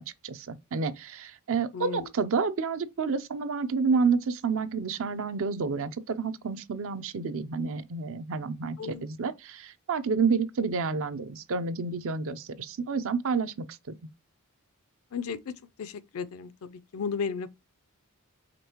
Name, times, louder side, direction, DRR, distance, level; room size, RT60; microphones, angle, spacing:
voice 1, 0.0-13.9, right 5 dB, 65° right, 0.5 m, -29 dB
voice 2, 1.7-2.1 8.8-9.0 15.1-15.5 15.8-17.5, left 6 dB, 70° left, 0.5 m, -34 dB
5.2 x 3.5 x 2.9 m
head